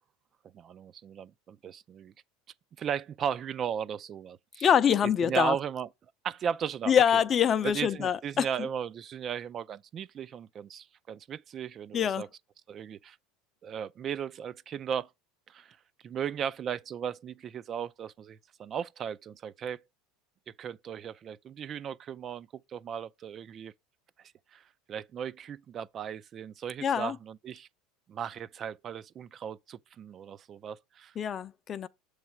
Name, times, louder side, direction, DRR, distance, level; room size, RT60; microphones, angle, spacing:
voice 1, 0.5-2.1 2.8-4.7 5.2-5.9 6.2-7.2 7.6-12.3 12.7-13.2 13.6-15.1 15.5-15.8 16.0-19.8 20.5-23.7 24.5-27.7 28.1-31.1, right 8 dB, 40° right, 0.3 m, -36 dB
voice 2, 4.6-5.6 6.9-8.5 11.9-12.2 26.8-27.1 31.2-31.9, left 8 dB, 35° left, 0.5 m, -25 dB
7.1 x 3.2 x 5.9 m
supercardioid pair, 100°, 0 cm